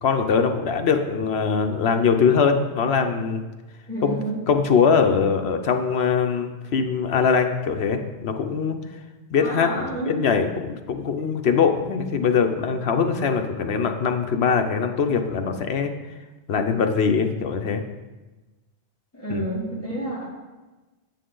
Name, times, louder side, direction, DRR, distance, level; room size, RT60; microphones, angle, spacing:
voice 1, 0.0-3.4 4.0-4.2 4.5-8.8 9.3-15.9 16.5-17.8 19.3-19.5, left 6 dB, 70° left, 5 dB, 1.0 m, -22 dB
voice 2, 3.9-4.4 9.4-10.2 19.1-20.3, right 2 dB, 10° left, -8 dB, 2.5 m, -29 dB
9.0 x 8.5 x 3.8 m, 1.2 s
omnidirectional pair, 1.2 m